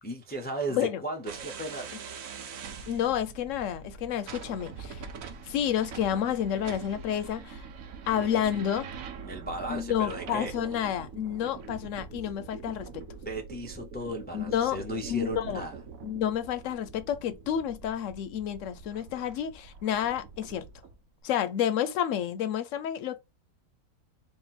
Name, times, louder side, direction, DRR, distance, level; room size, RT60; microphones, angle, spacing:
voice 1, 0.0-1.9 8.2-8.3 9.2-10.5 13.2-15.8, right 1 dB, 15° left, 0.3 m, -35 dB
sound 1, 1.3-21.0, right 5 dB, 90° right, 1.2 m, -44 dB
voice 2, 2.9-5.0 5.4-7.7 8.1-8.9 9.7-13.0 14.3-14.8 15.1-15.6 16.0-20.7 21.2-23.2, left 9 dB, 70° left, 0.9 m, -30 dB
3.7 x 2.5 x 4.0 m
omnidirectional pair, 1.4 m